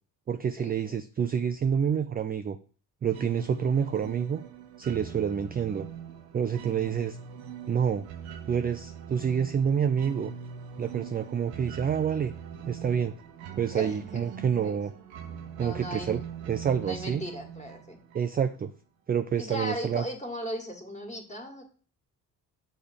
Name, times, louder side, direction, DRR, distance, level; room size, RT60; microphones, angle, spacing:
voice 1, 0.3-2.6 3.0-4.4 4.8-5.9 6.3-7.2 7.7-8.0 8.5-10.3 10.8-12.3 12.7-13.1 13.6-14.9 15.6-16.2 16.5-17.2 18.1-18.7 19.1-20.0, right 7 dB, 25° right, 9 dB, 0.3 m, -28 dB
sound 1, 3.1-18.6, right 8 dB, 80° right, 0.8 m, -42 dB
voice 2, 13.7-14.8 15.6-16.2 16.8-18.0 19.4-21.6, equal, 15° left, 3 dB, 1.9 m, -37 dB
6.7 x 3.2 x 5.1 m, 0.40 s
hypercardioid pair, 45°, 44 cm